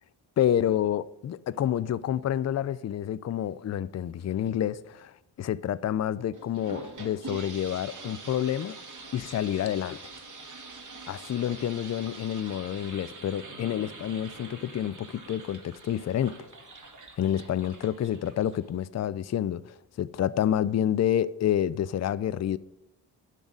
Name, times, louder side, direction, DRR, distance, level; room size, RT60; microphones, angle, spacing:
voice 1, 0.4-5.1 5.4-8.8 9.1-10.0 11.1-16.4 17.2-22.6, left 10 dB, 40° left, 0.4 m, -28 dB
sound 1, 6.3-18.8, right 3 dB, 45° right, 1.8 m, -45 dB
10.5 x 4.0 x 7.4 m
cardioid pair, 95°, 42 cm